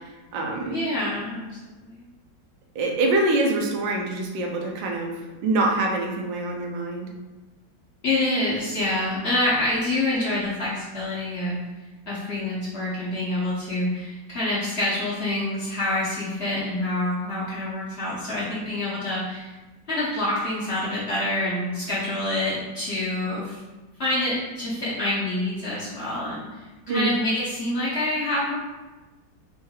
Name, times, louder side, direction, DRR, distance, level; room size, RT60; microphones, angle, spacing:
voice 1, 0.0-0.8 2.7-5.1 5.4-7.1 26.9-27.1, right 2 dB, 85° right, 1 dB, 1.4 m, -25 dB
voice 2, 0.7-2.0 8.0-11.6 12.1-19.5 19.9-23.6 24.0-28.6, left 1 dB, 45° left, -9 dB, 0.9 m, -27 dB
4.4 x 3.1 x 2.3 m, 1.2 s
omnidirectional pair, 2.0 m